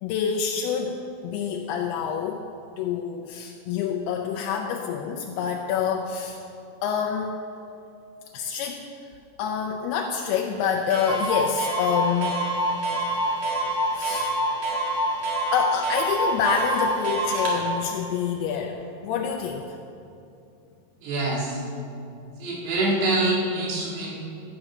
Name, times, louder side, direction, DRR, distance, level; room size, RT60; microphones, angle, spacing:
voice 1, 0.0-1.0 1.2-2.5 2.8-6.4 6.8-7.4 8.3-8.9 9.4-12.4 13.9-14.3 15.5-19.8, left 7 dB, 80° left, 1 dB, 2.6 m, -27 dB
Clock, 10.4-10.5 10.6-10.7 10.9-17.6, right 1 dB, 55° right, 3.2 m, -26 dB
voice 2, 21.0-21.6 22.4-24.1, right 2 dB, 90° right, -3 dB, 4.1 m, -25 dB
12.5 x 7.6 x 5.9 m, 2.6 s
omnidirectional pair, 4.7 m